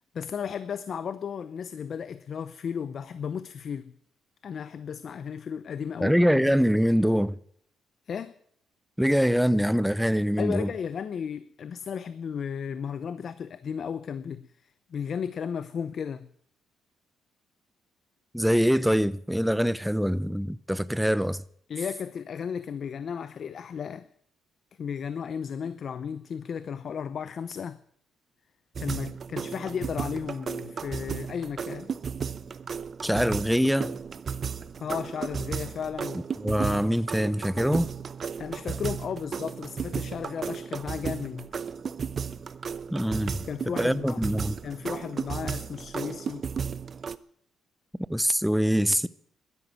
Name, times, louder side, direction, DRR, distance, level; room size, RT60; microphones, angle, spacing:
voice 1, 0.1-4.0 4.4-6.5 8.1-8.4 10.4-16.3 21.7-24.1 24.8-27.8 28.8-31.9 34.8-36.3 38.4-41.5 43.5-44.2 44.6-46.5, left 7 dB, 55° left, 0.7 m, -34 dB
voice 2, 6.0-7.4 9.0-10.7 18.3-21.4 33.0-34.0 36.4-37.9 42.9-43.5 43.8-44.6 48.1-49.1, equal, ahead, 0.6 m, -24 dB
sound 1, 28.8-47.2, right 6 dB, 45° right, 0.7 m, -34 dB
12.5 x 11.0 x 9.2 m
cardioid pair, 90°, 0 cm